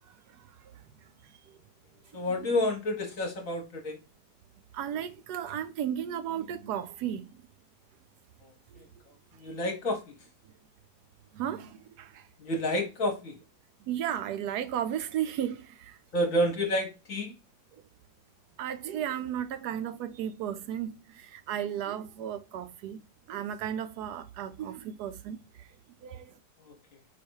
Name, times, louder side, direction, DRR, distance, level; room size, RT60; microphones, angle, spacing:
voice 1, 2.1-4.0 8.4-8.5 9.4-10.0 12.4-13.3 16.1-17.3 26.7-26.8, left 1 dB, 50° left, 1.3 m, -29 dB
voice 2, 4.7-7.3 11.3-12.2 13.9-16.0 17.7-17.8 18.6-23.0 23.3-25.4 26.0-26.3, right 10 dB, 70° right, 1.1 m, -34 dB
4.7 x 2.6 x 4.4 m
omnidirectional pair, 2.0 m